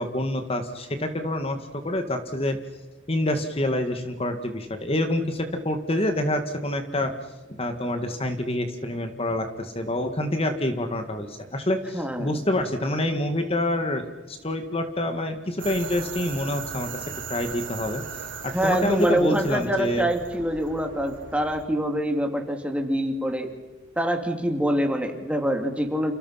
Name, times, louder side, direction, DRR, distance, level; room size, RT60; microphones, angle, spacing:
voice 1, 0.0-2.6 3.1-7.2 7.6-17.0 17.3-18.0 18.4-20.1, left 1 dB, 30° left, 7 dB, 1.9 m, -27 dB
voice 2, 11.9-12.3 18.5-23.5 24.0-26.1, right 1 dB, 5° right, 4 dB, 3.0 m, -25 dB
sound 1, 15.6-21.6, right 6 dB, 80° right, 4.0 m, -38 dB
30.0 x 29.0 x 5.8 m, 1.2 s
head